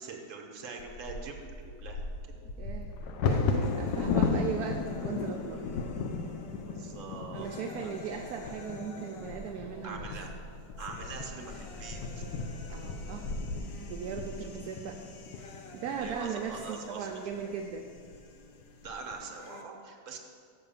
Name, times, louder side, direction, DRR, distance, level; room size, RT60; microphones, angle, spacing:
voice 1, 0.0-2.4 6.7-7.5 7.8-8.0 9.8-10.3 10.8-12.2 14.4-14.5 16.0-17.1 18.8-20.2, right 4 dB, 55° right, 2 dB, 1.3 m, -43 dB
Bird vocalization bird call bird song / Wind / Thunder, 0.8-16.7 17.3-17.4 17.8-18.2 18.6-19.1, left 4 dB, 85° left, 1.3 m, -35 dB
voice 2, 2.6-5.7 7.3-10.1 12.7-13.3 13.8-15.0 15.3-17.9, right 7 dB, 75° right, 2 dB, 1.1 m, -38 dB
sound 1, 3.6-19.6, left 2 dB, 55° left, 0.7 m, -50 dB
6.2 x 5.8 x 7.0 m, 2.2 s
omnidirectional pair, 1.7 m